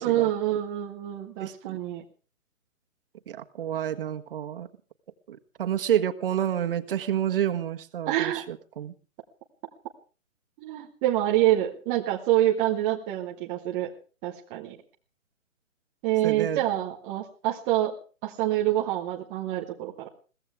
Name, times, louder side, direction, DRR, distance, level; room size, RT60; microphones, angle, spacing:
voice 1, 0.0-2.0 8.1-8.4 10.6-13.9 14.2-14.8 16.0-17.9 18.2-20.1, right 13 dB, 10° right, -1 dB, 0.7 m, -26 dB
voice 2, 1.4-1.8 3.3-4.7 5.3-8.9 16.2-16.6, right 10 dB, 40° right, 7 dB, 1.5 m, -29 dB
22.0 x 16.5 x 3.5 m, 0.37 s
hypercardioid pair, 150°, 41 cm